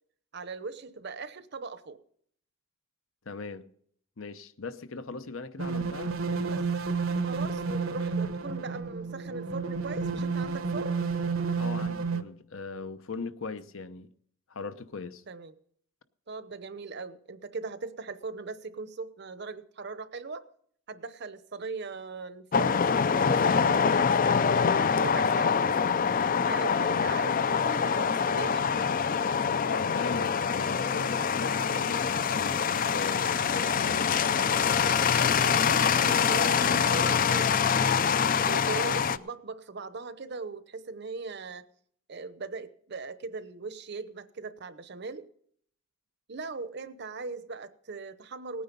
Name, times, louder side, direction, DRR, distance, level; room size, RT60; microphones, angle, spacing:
voice 1, 0.3-2.0 6.5-6.6 7.2-11.1 15.3-15.5 16.3-20.4 20.9-22.8 23.2-24.7 24.9-28.7 35.4-38.2 38.4-41.6 42.1-45.3 46.3-48.6, right 4 dB, 55° right, 0.8 m, -39 dB
voice 2, 3.3-3.7 4.2-6.1 11.6-14.1 14.5-15.2 29.6-34.2, left 4 dB, 70° left, 0.9 m, -39 dB
sound 1, 5.6-12.2, right 4 dB, 75° right, 1.0 m, -31 dB
sound 2, 22.5-39.2, left 6 dB, 40° left, 0.4 m, -25 dB
18.5 x 9.5 x 5.3 m
head